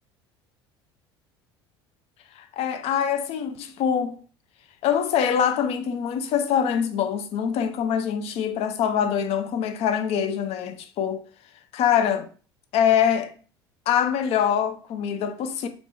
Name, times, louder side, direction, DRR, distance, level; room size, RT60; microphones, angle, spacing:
voice 1, 2.4-4.2 4.8-11.2 11.7-12.3 12.7-13.3 13.9-15.7, left 8 dB, 50° left, 0.5 m, -24 dB
2.4 x 2.2 x 3.6 m
hypercardioid pair, 70°, 13 cm